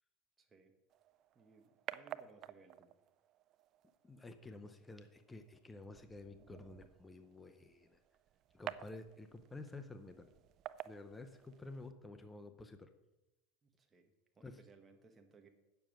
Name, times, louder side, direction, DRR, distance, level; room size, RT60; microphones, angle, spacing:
voice 1, 0.4-0.7 1.3-2.9 13.6-15.5, right 4 dB, 20° right, 4 dB, 1.2 m, -63 dB
sound 1, 0.9-11.9, right 12 dB, 45° right, 0.4 m, -52 dB
voice 2, 4.0-8.0 8.5-10.3 10.8-12.9 14.4-14.6, left 2 dB, 10° left, 8 dB, 0.7 m, -51 dB
8.9 x 7.0 x 6.2 m, 0.99 s
supercardioid pair, 120°, 0 cm